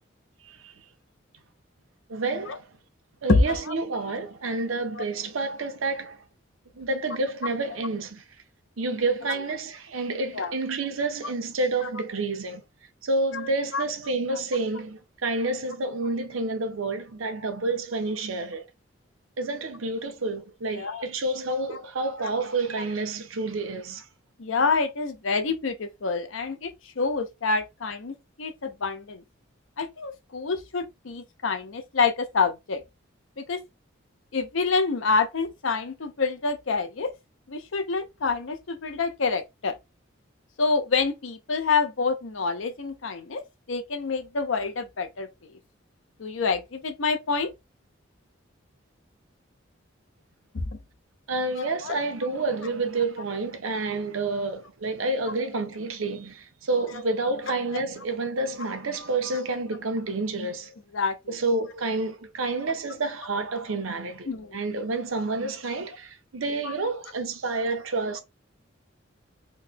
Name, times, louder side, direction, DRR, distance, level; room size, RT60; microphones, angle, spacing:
voice 1, 0.4-0.7 2.1-2.7 3.2-6.2 6.7-8.2 8.8-12.6 13.0-18.7 19.4-24.1 51.3-60.7 61.3-68.2, right 3 dB, 90° right, 0.8 m, -29 dB
voice 2, 3.3-3.7 10.3-10.5 13.7-13.8 20.7-21.0 24.4-29.2 29.8-32.8 33.4-33.6 34.3-37.1 37.5-39.7 40.6-43.4 43.7-45.3 46.2-47.5 50.5-50.6 51.6-52.0 60.9-61.1 64.3-64.6 66.6-66.7, left 4 dB, 80° left, 0.6 m, -27 dB
3.1 x 2.2 x 3.6 m
head